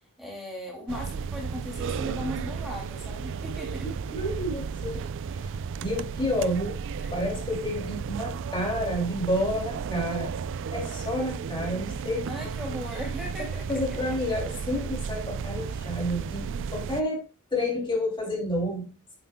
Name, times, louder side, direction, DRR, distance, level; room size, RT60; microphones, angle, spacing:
voice 1, 0.2-3.9 7.0-7.1 12.3-13.8, equal, ahead, -2 dB, 2.4 m, -37 dB
sound 1, 0.9-17.0, right 6 dB, 60° right, 0.4 m, -34 dB
voice 2, 4.0-5.0 5.4-5.5 5.8-6.8 7.1-10.3 10.7-12.3 13.4-17.2 17.5-18.9, left 1 dB, 20° left, -1 dB, 2.6 m, -30 dB
9.1 x 7.8 x 2.2 m, 0.31 s
head